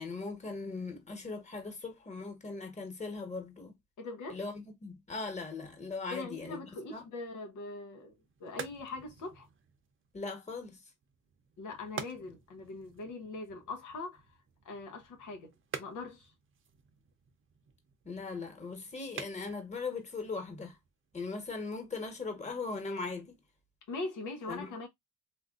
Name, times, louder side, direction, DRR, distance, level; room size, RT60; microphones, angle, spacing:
voice 1, 0.0-3.7 4.3-7.1 10.1-10.8 18.0-20.8 21.1-23.4 24.5-24.7, left 4 dB, 25° left, 1.3 m, -39 dB
voice 2, 4.0-4.4 6.1-8.1 8.4-9.5 11.6-14.2 14.6-15.5 15.8-16.3 23.9-24.9, left 3 dB, 75° left, 0.8 m, -41 dB
sound 1, 8.0-21.5, right 7 dB, 40° right, 0.7 m, -49 dB
3.5 x 2.5 x 2.4 m
cardioid pair, 90°, 30 cm